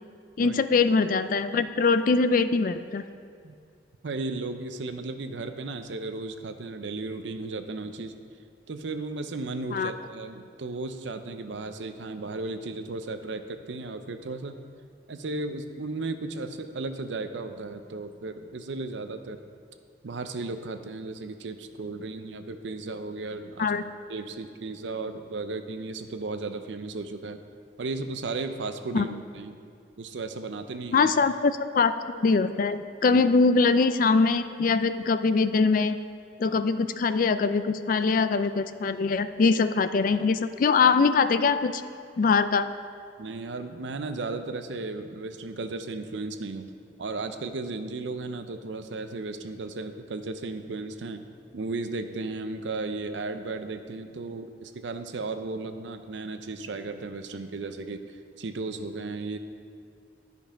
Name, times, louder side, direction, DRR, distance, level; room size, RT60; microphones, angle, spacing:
voice 1, 0.4-3.0 9.7-9.9 23.6-23.8 28.9-29.1 30.9-36.0 36.4-41.8 42.2-42.7, left 4 dB, 50° left, 12 dB, 0.3 m, -23 dB
voice 2, 4.0-8.2 8.7-14.6 15.1-19.4 20.0-23.7 24.1-27.4 27.8-29.6 30.0-31.1 33.1-33.2 36.4-36.6 43.2-46.7 47.0-51.2 51.5-59.4, right 3 dB, 80° right, 8 dB, 0.6 m, -35 dB
11.5 x 5.4 x 5.0 m, 2.3 s
head